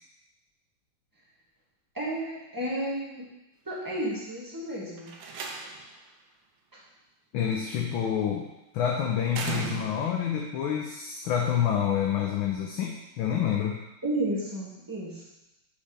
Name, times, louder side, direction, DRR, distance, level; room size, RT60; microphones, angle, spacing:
voice 1, 1.9-3.3 3.6-5.1 6.7-6.8 14.0-15.2, right 1 dB, 10° right, -6 dB, 1.2 m, -32 dB
Slam, 5.0-6.0 7.5-7.9 9.3-10.3, right 5 dB, 80° right, 1.6 m, -36 dB
voice 2, 7.3-8.5 8.7-13.8, left 9 dB, 75° left, 0 dB, 1.4 m, -28 dB
5.4 x 4.2 x 5.0 m, 0.93 s
omnidirectional pair, 2.4 m